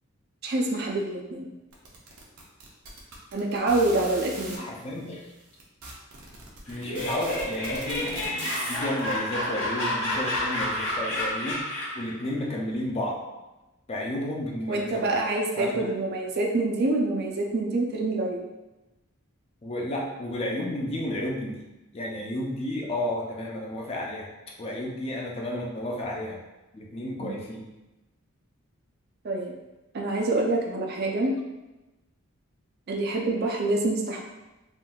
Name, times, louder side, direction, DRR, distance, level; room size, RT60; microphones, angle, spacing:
voice 1, 0.4-1.5 3.3-4.6 14.7-18.5 27.2-27.4 29.2-29.5 29.9-31.3 32.9-34.2, right 2 dB, 45° right, 0 dB, 0.4 m, -26 dB
sound 1, 1.7-4.6 5.3-5.4 5.6-9.1, right 2 dB, 85° right, 0.7 m, -40 dB
voice 2, 4.5-5.3 6.7-11.6 11.9-13.2 13.9-15.0 15.6-15.8 19.6-21.6 21.9-24.3 24.6-26.4 26.7-27.7, left 1 dB, 30° left, -2 dB, 0.4 m, -32 dB
Laughter, 6.7-12.1, left 1 dB, 65° left, 1.0 m, -30 dB
3.6 x 2.6 x 2.2 m, 1.0 s
head